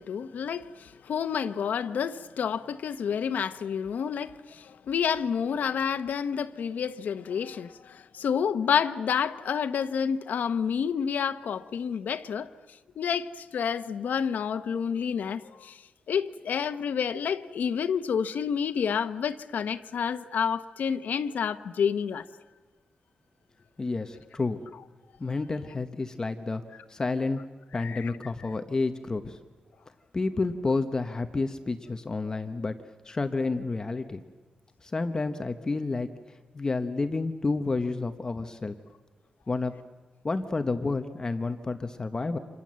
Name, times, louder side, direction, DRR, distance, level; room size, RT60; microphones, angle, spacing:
voice 1, 0.0-12.5 13.0-15.8 16.1-22.2 27.7-28.1 32.3-32.4, left 7 dB, 85° left, 1.0 m, -29 dB
voice 2, 23.8-24.6 25.2-26.6 26.9-27.4 27.7-29.4 30.1-32.7 33.0-34.2 34.8-36.1 36.5-38.7 39.5-39.7 40.2-42.4, left 3 dB, 25° left, 1.0 m, -30 dB
29.0 x 26.5 x 7.6 m
wide cardioid pair, 175°, 3 cm